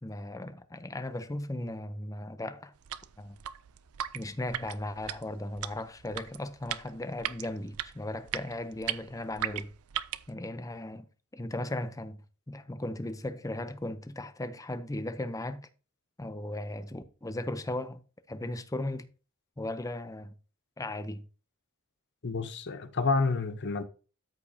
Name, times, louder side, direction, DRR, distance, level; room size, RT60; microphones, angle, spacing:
voice 1, 0.0-2.7 3.2-3.4 4.1-9.7 10.3-11.1 11.3-15.6 16.2-18.0 18.3-19.1 19.6-20.3 20.8-21.3, left 1 dB, 15° left, 0.6 m, -37 dB
sound 1, 2.7-10.3, right 11 dB, 75° right, 0.5 m, -38 dB
voice 2, 22.2-23.8, left 4 dB, 50° left, 0.8 m, -29 dB
13.0 x 5.1 x 2.7 m
head